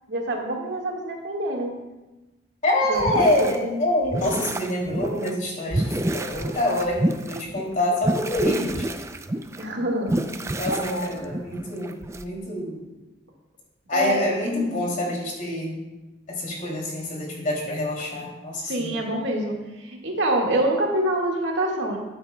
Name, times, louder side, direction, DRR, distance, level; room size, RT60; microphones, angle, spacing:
voice 1, 0.1-1.8 2.9-3.6 9.6-10.3 10.7-11.3 13.9-14.6 18.5-22.0, right 1 dB, 75° right, 0 dB, 1.7 m, -26 dB
voice 2, 2.6-5.8 6.1-8.9 10.6-12.8 13.9-15.8 16.3-19.0, left 1 dB, 45° left, -2 dB, 2.7 m, -26 dB
sound 1, 2.9-3.6 4.0-5.3 5.7-12.2, right 1 dB, 15° right, 0.4 m, -29 dB
13.0 x 8.9 x 2.2 m, 1.1 s
head